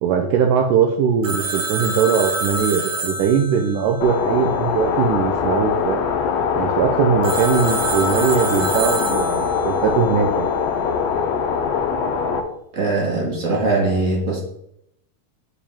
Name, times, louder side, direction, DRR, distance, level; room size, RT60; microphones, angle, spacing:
voice 1, 0.0-6.0 6.6-10.5, right 7 dB, 80° right, 3 dB, 2.1 m, -20 dB
Telephone, 1.2-4.9 7.2-9.8, right 2 dB, 60° right, 2.6 m, -27 dB
sound 1, 4.0-12.4, left 6 dB, 80° left, 1.5 m, -22 dB
voice 2, 12.7-14.4, right 3 dB, 40° right, -2 dB, 1.1 m, -21 dB
9.8 x 5.0 x 3.5 m, 0.75 s
omnidirectional pair, 4.0 m